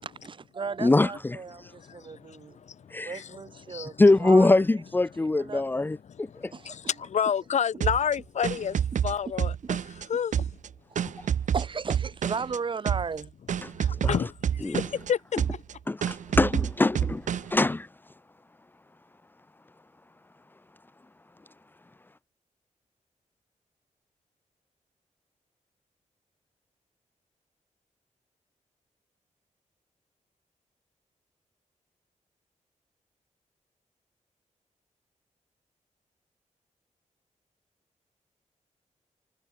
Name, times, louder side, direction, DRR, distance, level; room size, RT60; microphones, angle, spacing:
voice 1, 0.0-2.6 3.0-4.6 5.2-5.9 6.5-6.8 10.9-11.0 11.5-13.3, right 5 dB, 40° right, 7.1 m, -36 dB
voice 2, 0.8-1.1 2.9-3.2 4.0-6.3 13.6-13.7 14.0-14.2 14.6-14.8 15.9-17.2 17.5-17.9, left 2 dB, 15° left, 1.1 m, -22 dB
voice 3, 1.6-3.3 3.7-3.9 6.1-10.5 13.8-15.6, left 8 dB, 65° left, 1.7 m, -31 dB
sound 1, 7.8-10.1 10.3-12.6 12.9-13.2 13.5-15.1 15.4-15.7 16.0-17.6, right 8 dB, 75° right, 2.2 m, -28 dB
wide cardioid pair, 165°, 13 cm